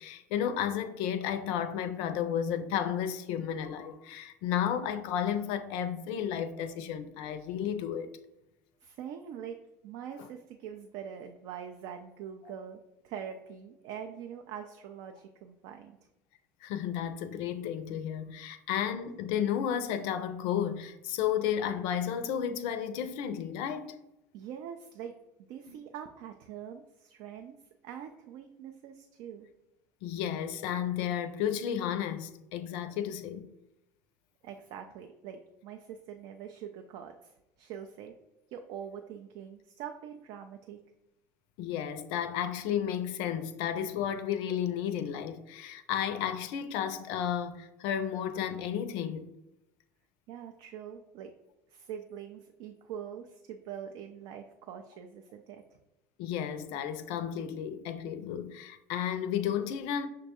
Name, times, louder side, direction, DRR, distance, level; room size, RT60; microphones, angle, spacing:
voice 1, 0.0-8.1 16.6-24.0 25.7-25.8 30.0-33.5 41.6-49.3 56.2-60.1, left 9 dB, 60° left, 0.4 m, -32 dB
voice 2, 8.8-9.6 9.8-16.0 24.3-25.2 25.5-27.6 27.8-29.5 34.4-38.1 38.5-40.8 50.3-51.3 51.7-55.8, right 8 dB, 60° right, 0.4 m, -44 dB
6.3 x 2.2 x 2.8 m
hypercardioid pair, 75°, 9 cm